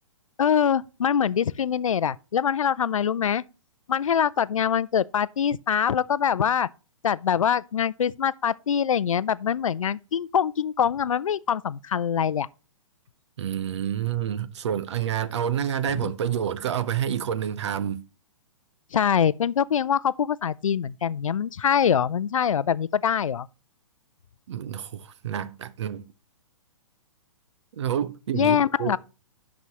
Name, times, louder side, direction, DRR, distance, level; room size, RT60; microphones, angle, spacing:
voice 1, 0.4-3.4 3.9-6.7 7.0-12.5 16.0-16.1 18.9-23.5 28.3-29.0, left 8 dB, 75° left, 0.4 m, -24 dB
voice 2, 13.4-18.0 24.5-26.1 27.7-29.0, right 9 dB, 60° right, 0.7 m, -28 dB
10.5 x 6.1 x 2.9 m
figure-of-eight pair, 120°, 17 cm